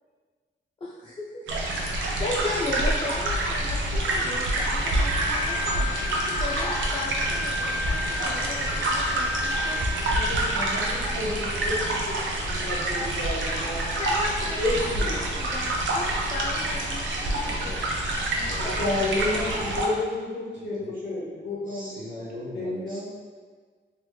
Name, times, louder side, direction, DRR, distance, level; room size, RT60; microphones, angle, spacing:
voice 1, 0.8-10.1 14.0-17.8 18.4-18.9, left 2 dB, 25° left, -5 dB, 0.4 m, -36 dB
sound 1, 1.5-19.9, right 1 dB, 90° right, 0.5 m, -27 dB
Wind instrument woodwind instrument, 5.0-10.5, left 3 dB, 10° right, 0.7 m, -33 dB
voice 2, 10.1-12.2 12.4-13.8 14.6-15.2 18.6-22.0 22.5-23.0, left 2 dB, 65° left, -6 dB, 1.1 m, -31 dB
voice 3, 17.3-17.8 18.3-18.8 19.2-19.8 20.5-20.9 21.7-23.0, left 1 dB, 45° right, -6 dB, 1.0 m, -41 dB
3.3 x 2.9 x 2.2 m, 1.5 s
wide cardioid pair, 130°, 19 cm